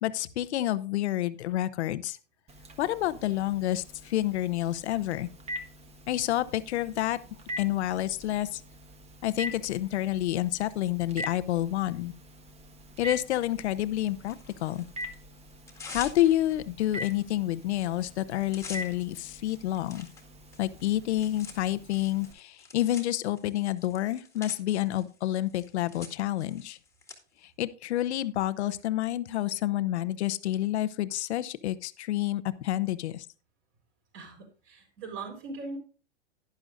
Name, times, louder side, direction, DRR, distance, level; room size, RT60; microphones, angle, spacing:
voice 1, 0.0-2.2 2.8-5.3 6.1-7.2 7.6-8.6 9.2-12.1 13.0-14.4 14.6-14.9 15.9-20.1 20.6-26.8 27.4-33.3, left 14 dB, 70° left, 14 dB, 0.8 m, -29 dB
Telephone, 2.5-22.3, equal, 20° right, 1.4 m, -44 dB
Tearing, 14.2-15.1 15.5-16.6 17.1-17.2 17.5-17.8 18.1-27.2, left 4 dB, 10° left, 1.8 m, -47 dB
voice 2, 34.1-35.8, right 3 dB, 35° right, 3 dB, 4.5 m, -40 dB
11.5 x 10.5 x 2.5 m, 0.35 s
hypercardioid pair, 130°, 35 cm